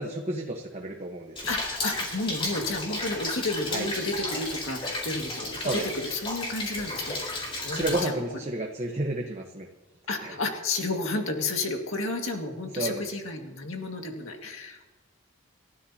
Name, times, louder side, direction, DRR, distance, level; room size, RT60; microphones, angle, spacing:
voice 1, 0.0-1.5 3.7-3.9 5.6-5.9 7.7-9.7 10.2-10.4 12.8-13.0, right 1 dB, 30° right, 1 dB, 1.2 m, -31 dB
Rain, 1.4-8.0, left 2 dB, 25° left, 3.7 m, -33 dB
voice 2, 1.5-8.1 10.1-14.8, left 2 dB, 70° left, 3 dB, 2.0 m, -32 dB
29.0 x 12.5 x 2.9 m, 1.2 s
head